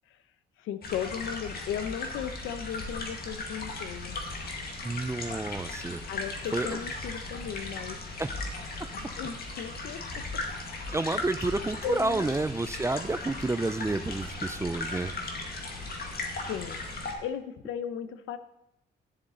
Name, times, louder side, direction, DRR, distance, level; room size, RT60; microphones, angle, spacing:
voice 1, 0.6-4.2 6.1-8.0 8.9-10.4 11.8-12.2 16.5-16.8 17.2-18.4, left 9 dB, 85° left, 11 dB, 0.8 m, -36 dB
sound 1, 0.8-17.1, left 2 dB, 50° left, 1.9 m, -37 dB
voice 2, 4.8-6.0 6.5-6.8 8.2-8.3 10.9-15.1, right 2 dB, 15° right, 14 dB, 0.4 m, -30 dB
11.0 x 7.2 x 3.9 m, 0.83 s
cardioid pair, 90°, 20 cm